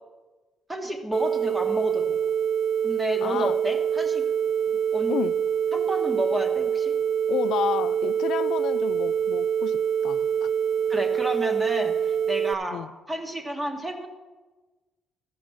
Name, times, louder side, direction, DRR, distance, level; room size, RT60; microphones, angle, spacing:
voice 1, 0.7-2.2 2.8-4.2 4.9-5.2 5.7-6.9 10.9-14.1, equal, 15° right, 4 dB, 1.5 m, -31 dB
sound 1, 1.1-12.5, right 8 dB, 60° right, 0.4 m, -25 dB
voice 2, 3.2-3.6 4.7-4.8 5.1-5.4 7.3-10.5 12.7-12.9, left 10 dB, 80° left, 15 dB, 0.4 m, -31 dB
14.0 x 5.2 x 6.3 m, 1.2 s
cardioid pair, 90°, 0 cm